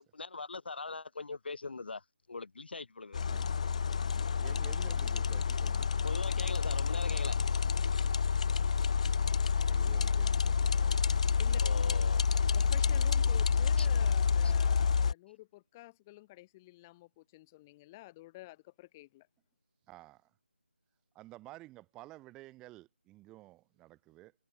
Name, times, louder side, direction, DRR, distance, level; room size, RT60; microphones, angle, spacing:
voice 1, 0.0-3.2 6.0-7.4 11.6-12.3 13.8-13.9 14.4-14.5, left 3 dB, 60° left, 3.0 m, -41 dB
sound 1, 3.1-15.1, left 6 dB, 35° left, 0.7 m, -28 dB
voice 2, 4.4-5.9 9.7-11.0 19.9-20.3 21.1-24.3, right 18 dB, 10° right, 3.1 m, -53 dB
voice 3, 12.5-19.3, left 19 dB, 15° left, 1.6 m, -51 dB
figure-of-eight pair, 165°, 6 cm